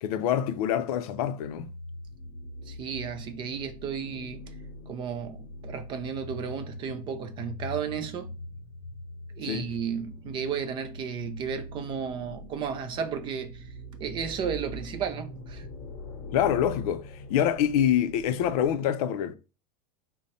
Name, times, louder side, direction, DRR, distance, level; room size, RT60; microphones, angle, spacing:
voice 1, 0.0-1.7 9.4-9.7 16.3-19.4, left 9 dB, 65° left, 0.5 m, -26 dB
sound 1, 1.4-18.7, left 1 dB, 40° left, 0.8 m, -42 dB
voice 2, 2.7-4.4 4.9-8.3 9.4-13.7 14.0-15.7, right 7 dB, 25° right, 0.3 m, -33 dB
5.1 x 2.1 x 4.1 m
supercardioid pair, 160°, 21 cm